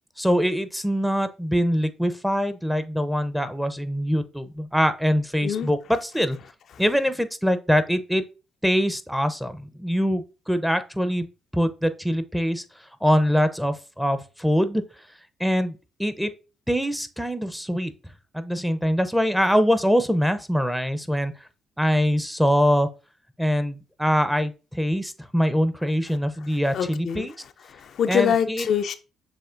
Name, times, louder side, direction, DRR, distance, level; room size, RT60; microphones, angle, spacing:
voice 1, 0.2-6.4 6.8-8.2 8.6-11.3 11.5-12.6 13.0-14.8 15.4-16.3 16.7-17.9 18.3-21.3 21.8-22.9 23.4-27.3 28.1-28.7, equal, ahead, 0.6 m, -23 dB
voice 2, 26.7-28.9, left 8 dB, 65° left, 0.4 m, -25 dB
7.0 x 3.0 x 2.5 m
supercardioid pair, 65°, 0 cm